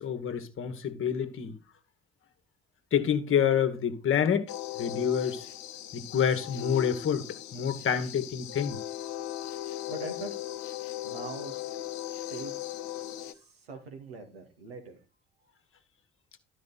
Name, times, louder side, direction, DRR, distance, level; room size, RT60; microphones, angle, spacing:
voice 1, 0.0-1.5 2.9-4.5 4.8-5.5 5.9-8.8, left 8 dB, 45° left, 1.4 m, -27 dB
sound 1, 4.5-13.3, left 13 dB, 65° left, 0.9 m, -38 dB
voice 2, 9.9-10.6 11.0-15.0, right 3 dB, 85° right, 1.7 m, -44 dB
12.0 x 4.8 x 4.0 m
figure-of-eight pair, 50°, 30 cm